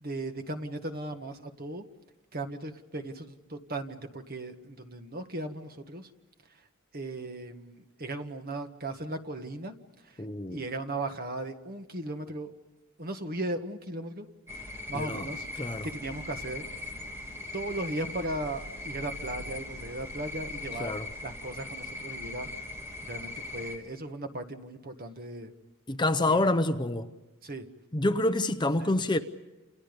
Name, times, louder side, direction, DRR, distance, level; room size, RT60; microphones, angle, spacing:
voice 1, 0.0-1.8 2.3-6.1 6.9-9.7 10.0-10.2 10.5-12.5 13.0-14.3 14.9-15.5 15.8-16.6 17.5-20.9 21.2-22.5 23.1-25.5 26.2-26.5 27.4-27.6 28.8-29.0, right 2 dB, 40° right, 1.6 m, -37 dB
voice 2, 10.2-10.6 14.9-15.3 15.6-15.9 20.8-21.1 25.9-27.1 27.9-29.2, left 2 dB, 20° left, 0.8 m, -27 dB
sound 1, 14.5-23.8, left 2 dB, 10° right, 2.8 m, -40 dB
29.5 x 29.0 x 5.3 m
head